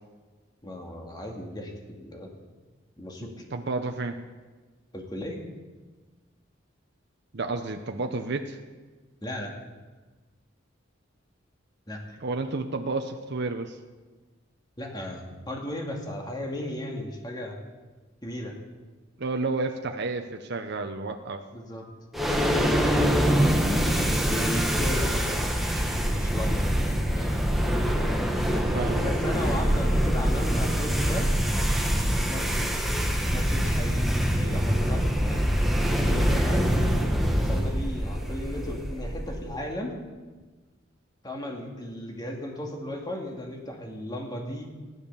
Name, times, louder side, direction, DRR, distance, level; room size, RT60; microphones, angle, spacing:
voice 1, 0.6-2.3 3.0-3.3 4.9-5.4 9.2-9.5 11.9-12.2 14.8-17.6 18.2-18.5 21.5-21.8 23.1-26.7 27.1-27.4 29.0-31.3 32.0-33.0 33.3-35.4 35.8-40.0 41.2-44.7, left 1 dB, 20° left, 1 dB, 2.2 m, -36 dB
voice 2, 3.2-4.2 7.3-8.6 12.2-13.8 19.2-21.4 28.5-29.1, right 3 dB, 60° right, 5 dB, 0.8 m, -31 dB
sound 1, 22.1-39.5, equal, ahead, 1.4 m, -24 dB
14.5 x 11.0 x 6.9 m, 1.3 s
head